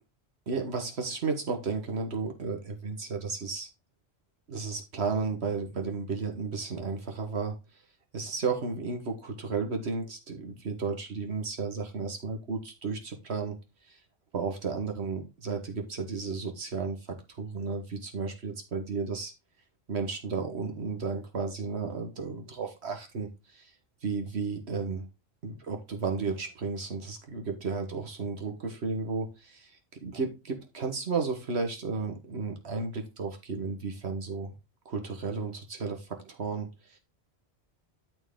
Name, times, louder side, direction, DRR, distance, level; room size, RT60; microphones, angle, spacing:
voice 1, 0.5-3.7 4.5-7.5 8.1-13.6 13.8-14.0 14.3-19.3 19.9-23.7 24.0-25.0 25.4-34.5 34.8-37.0, right 4 dB, 80° right, 4 dB, 1.6 m, -33 dB
12.0 x 4.5 x 3.7 m, 0.26 s
omnidirectional pair, 1.1 m